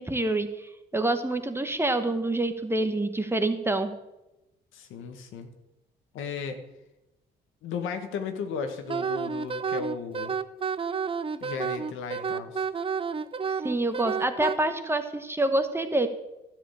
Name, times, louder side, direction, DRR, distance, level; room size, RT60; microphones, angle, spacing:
voice 1, 0.0-3.9 13.6-16.1, right 2 dB, 10° right, 8 dB, 1.1 m, -27 dB
voice 2, 4.7-5.5 6.1-6.6 7.6-10.4 11.4-12.7, left 5 dB, 85° left, 7 dB, 1.4 m, -35 dB
Wind instrument woodwind instrument, 8.9-14.6, right 6 dB, 25° right, 0.5 m, -30 dB
12.5 x 5.1 x 8.4 m, 0.95 s
cardioid pair, 90°, 20 cm